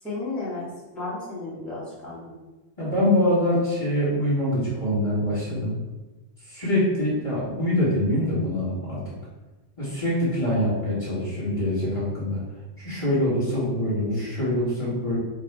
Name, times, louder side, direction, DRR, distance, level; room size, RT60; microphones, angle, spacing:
voice 1, 0.0-2.3, left 2 dB, ahead, -10 dB, 1.1 m, -33 dB
voice 2, 2.8-5.8 6.5-9.0 9.8-12.4 12.8-15.2, left 1 dB, 25° left, -9 dB, 1.4 m, -24 dB
4.0 x 2.3 x 4.6 m, 1.1 s
omnidirectional pair, 1.4 m